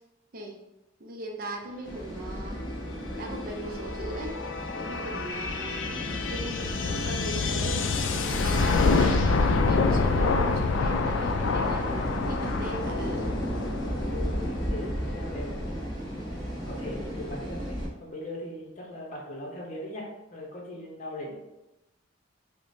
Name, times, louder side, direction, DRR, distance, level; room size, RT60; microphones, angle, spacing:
voice 1, 1.0-2.6 3.1-4.4 4.7-7.8 8.2-13.4, right 2 dB, 45° right, 2 dB, 0.5 m, -39 dB
sound 1, 1.8-17.9, equal, 5° left, 1.2 m, -35 dB
sound 2, 2.3-15.8, left 4 dB, 65° left, 0.3 m, -28 dB
voice 2, 14.1-16.3 16.7-21.3, left 1 dB, 35° left, -2 dB, 0.8 m, -39 dB
4.7 x 2.2 x 2.6 m, 0.98 s
head